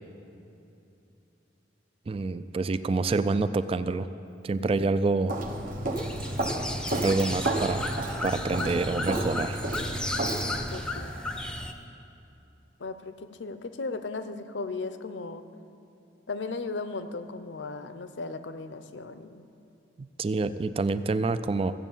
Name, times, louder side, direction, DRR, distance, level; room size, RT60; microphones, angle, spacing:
voice 1, 2.1-4.1 4.4-5.3 7.0-7.9 8.2-9.6 20.0-21.7, right 3 dB, 30° right, 12 dB, 0.3 m, -27 dB
voice 2, 4.6-5.0 10.7-11.1 12.8-15.4 16.3-19.5, left 3 dB, 75° left, 10 dB, 0.7 m, -36 dB
Walk footsteps, 5.3-10.8, right 2 dB, 50° right, 1.1 m, -31 dB
sound 1, 6.0-11.7, left 1 dB, 5° left, 0.7 m, -34 dB
14.5 x 8.1 x 7.3 m, 2.9 s
head